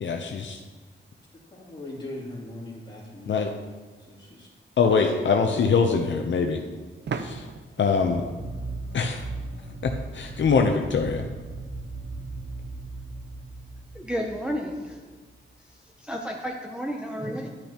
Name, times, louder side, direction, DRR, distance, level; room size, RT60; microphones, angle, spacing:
voice 1, 0.0-0.6 3.3-3.5 4.8-6.6 7.1-7.4 7.8-8.2 8.9-9.2 9.8-11.3, left 5 dB, 65° left, 4 dB, 0.7 m, -23 dB
voice 2, 1.5-3.4 4.0-4.5 5.0-5.1 5.6-5.8, left 1 dB, 20° left, -6 dB, 2.8 m, -40 dB
sound 1, 7.1-9.7, right 5 dB, 60° right, 0.6 m, -38 dB
sound 2, 7.9-15.2, right 3 dB, 85° right, 2.3 m, -38 dB
voice 3, 14.0-14.9 16.1-17.5, equal, 5° right, 0 dB, 0.6 m, -31 dB
12.0 x 8.8 x 2.9 m, 1.3 s
wide cardioid pair, 160°, 21 cm